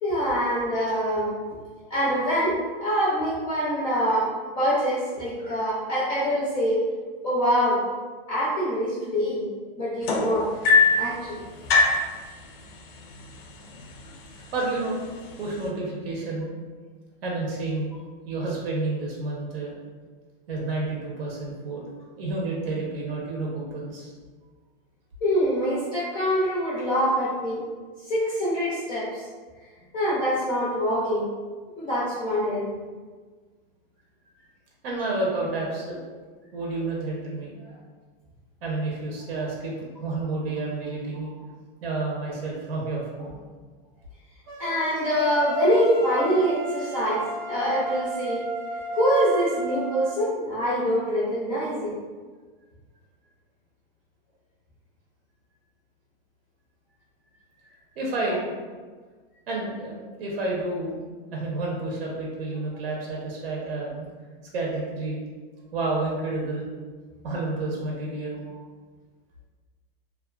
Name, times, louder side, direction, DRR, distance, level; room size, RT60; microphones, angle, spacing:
voice 1, 0.0-1.3 1.9-4.3 4.6-6.8 7.2-7.8 8.3-9.5 9.8-10.5 11.0-11.4 25.2-27.6 28.1-29.3 29.9-31.3 31.8-32.7 44.6-48.4 48.9-51.9, equal, 15° left, -9 dB, 0.4 m, -24 dB
sound 1, 10.0-11.1 11.7-12.1 13.1-13.2 13.6-14.0 14.7-14.8, left 4 dB, 80° left, 0.5 m, -19 dB
voice 2, 14.4-15.0 15.4-16.5 17.2-17.9 18.2-19.7 20.5-24.1 34.8-36.0 36.5-37.8 38.6-41.3 41.8-43.3 57.9-58.5 59.5-61.0 61.3-64.1 64.5-65.2 65.7-66.7 67.2-68.4, right 2 dB, 90° right, -3 dB, 0.8 m, -30 dB
sound 2, 44.5-50.2, right 2 dB, 40° right, 0.4 m, -33 dB
2.4 x 2.3 x 2.3 m, 1.5 s
supercardioid pair, 160°, 29 cm